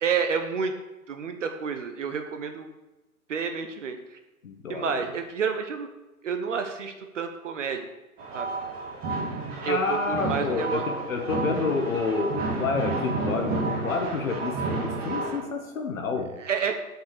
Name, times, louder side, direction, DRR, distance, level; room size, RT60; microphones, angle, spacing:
voice 1, 0.0-0.7 1.1-2.7 3.3-4.0 4.7-5.9 6.2-7.9 8.3-8.5 9.6-10.8 16.4-16.8, right 6 dB, 55° right, 7 dB, 1.0 m, -29 dB
voice 2, 4.4-4.9 9.4-16.3, left 4 dB, 60° left, 3 dB, 1.5 m, -29 dB
sound 1, 8.2-15.4, right 3 dB, 20° right, 1.6 m, -31 dB
7.8 x 5.5 x 6.7 m, 1.1 s
figure-of-eight pair, 125°, 44 cm